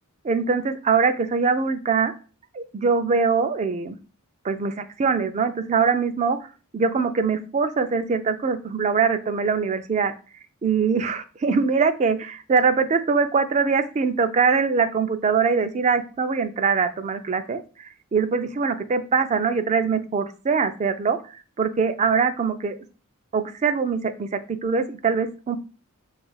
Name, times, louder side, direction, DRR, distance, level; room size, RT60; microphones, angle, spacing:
voice 1, 0.2-2.1 2.5-3.9 4.4-6.5 6.7-10.1 10.6-22.8 23.3-25.6, right 5 dB, 30° right, 10 dB, 0.3 m, -23 dB
3.5 x 2.4 x 3.9 m, 0.36 s
head